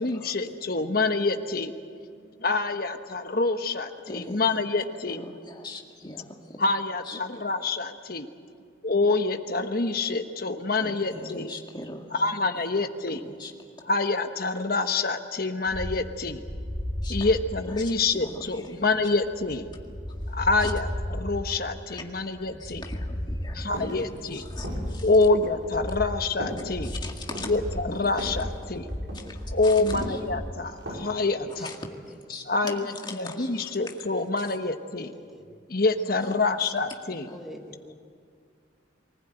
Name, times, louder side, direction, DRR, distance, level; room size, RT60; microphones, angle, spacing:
voice 1, 0.0-1.7 2.4-5.2 6.6-8.3 8.8-11.5 12.1-13.2 13.8-16.4 17.1-19.7 20.3-22.8 23.5-24.5 25.0-26.9 27.4-28.8 29.5-31.7 32.5-35.1 35.7-37.3, left 3 dB, 50° left, 7 dB, 1.3 m, -26 dB
voice 2, 4.1-4.4 5.1-6.6 7.1-7.4 10.8-12.2 13.1-13.5 17.0-17.2 18.1-18.7 20.6-20.7 21.9-22.0 22.4-25.1 26.8-27.5 28.0-28.3 29.1-29.8 30.1-30.2 31.6-31.7 32.3-33.7 36.2-36.7 37.3-37.4, left 2 dB, 25° left, 1 dB, 2.0 m, -41 dB
sound 1, 15.7-30.6, equal, 20° right, 2.3 m, -35 dB
sound 2, 23.7-24.0 24.6-25.0 25.4-25.7 26.4-26.7 27.2-27.6 28.2-28.6 28.9-29.2 29.9-30.3 30.8-31.2 31.5-31.6, equal, 85° right, 5.6 m, -36 dB
voice 3, 28.8-29.3 31.3-32.2 35.0-35.4 37.3-37.9, equal, ahead, 2 dB, 1.5 m, -46 dB
24.0 x 15.5 x 9.1 m, 2.2 s
head